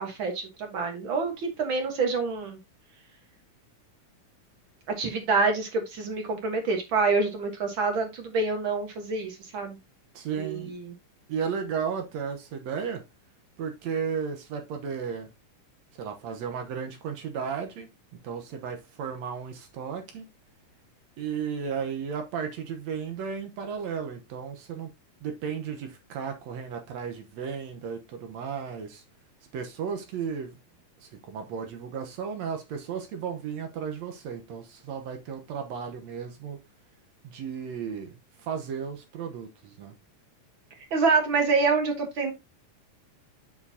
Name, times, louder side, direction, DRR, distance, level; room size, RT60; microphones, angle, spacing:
voice 1, 0.0-2.6 5.0-9.8 10.4-10.9 40.9-42.3, right 4 dB, 50° right, 1.8 m, -27 dB
voice 2, 10.1-10.7 11.3-13.0 13.6-15.3 16.0-20.3 21.2-24.9 25.2-29.0 29.5-30.6 31.0-36.6 37.2-39.9, right 6 dB, 70° right, 2.1 m, -34 dB
7.3 x 6.4 x 2.7 m
omnidirectional pair, 3.4 m